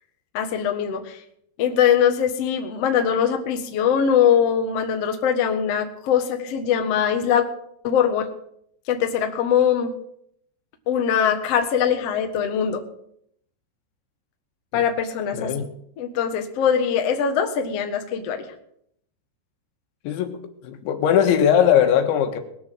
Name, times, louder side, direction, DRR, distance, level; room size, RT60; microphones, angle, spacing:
voice 1, 0.3-1.2 1.6-7.4 7.8-8.2 8.9-9.9 10.9-12.8 14.7-15.5 16.0-18.4, left 8 dB, 65° left, 6 dB, 1.6 m, -22 dB
voice 2, 15.3-15.7 20.1-20.4 20.6-22.4, left 9 dB, 90° left, 6 dB, 3.8 m, -19 dB
20.0 x 7.0 x 7.7 m, 0.71 s
omnidirectional pair, 5.1 m